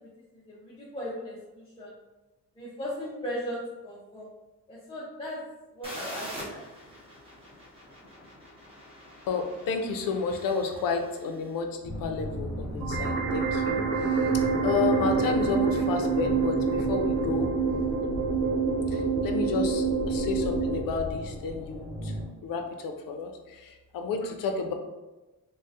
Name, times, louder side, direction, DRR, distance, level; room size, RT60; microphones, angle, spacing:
voice 1, 0.3-1.9 2.6-4.3 4.7-5.4 5.7-6.6, equal, 15° left, -7 dB, 0.4 m, -37 dB
sound 1, 5.8-11.5, equal, 15° right, 0.7 m, -44 dB
voice 2, 9.3-14.3 14.6-17.5 18.9-22.1 22.4-24.7, left 5 dB, 80° left, 5 dB, 0.5 m, -31 dB
sound 2, 11.8-22.3, left 1 dB, ahead, 1.3 m, -37 dB
sound 3, 12.8-20.8, right 5 dB, 80° right, 0.5 m, -27 dB
3.7 x 2.0 x 2.6 m, 1.1 s
wide cardioid pair, 165°, 33 cm